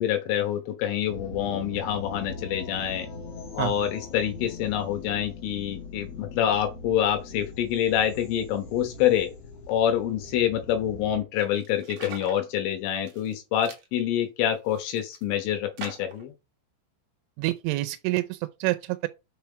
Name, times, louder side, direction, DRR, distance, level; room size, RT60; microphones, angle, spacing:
voice 1, 0.0-3.1 3.5-9.3 9.7-16.3, left 10 dB, 75° left, 3.6 m, -26 dB
sound 1, 1.1-11.2, left 3 dB, 50° left, 2.1 m, -41 dB
sound 2, 11.4-12.4 12.9-13.3 13.6-13.9 14.5-15.2 15.8-16.3, right 6 dB, 65° right, 1.8 m, -42 dB
voice 2, 17.4-19.1, right 19 dB, 80° right, 3.0 m, -27 dB
6.8 x 5.8 x 5.7 m
omnidirectional pair, 5.9 m